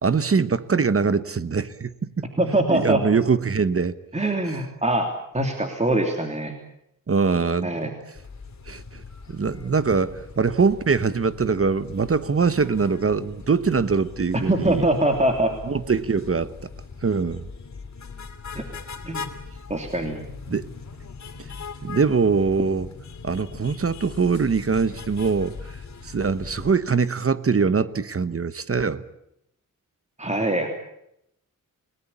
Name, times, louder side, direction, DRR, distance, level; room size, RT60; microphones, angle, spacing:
voice 1, 0.0-2.2 2.7-4.0 4.4-4.6 7.1-7.9 8.7-9.0 9.3-14.9 15.7-16.5 17.0-17.5 20.5-20.7 21.4-21.5 21.8-22.9 23.2-25.6 26.0-29.0, right 5 dB, 45° right, 15 dB, 1.1 m, -23 dB
voice 2, 2.4-3.0 4.1-5.1 5.3-6.5 7.6-7.9 14.3-15.5 18.5-18.6 19.0-19.3 19.7-20.2 30.2-30.7, right 1 dB, 20° right, 4 dB, 3.1 m, -23 dB
sound 1, 8.1-26.7, left 5 dB, 55° left, 2.9 m, -40 dB
30.0 x 19.0 x 8.6 m, 0.78 s
wide cardioid pair, 100°, 33 cm